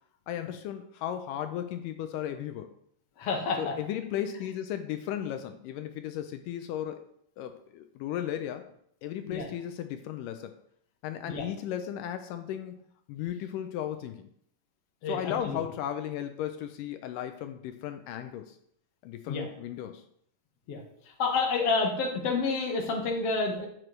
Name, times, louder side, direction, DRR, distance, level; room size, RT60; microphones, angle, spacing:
voice 1, 0.3-2.7 3.6-7.0 7.4-8.7 9.0-10.5 11.0-12.8 13.1-14.3 15.1-18.6 19.0-20.0, left 10 dB, 85° left, 8 dB, 2.2 m, -35 dB
voice 2, 3.2-3.7 9.3-9.5 11.3-11.4 15.0-15.6 19.3-19.5 20.7-20.8 21.1-23.7, left 4 dB, 55° left, 0 dB, 2.2 m, -29 dB
12.5 x 6.1 x 3.2 m, 0.70 s
omnidirectional pair, 3.7 m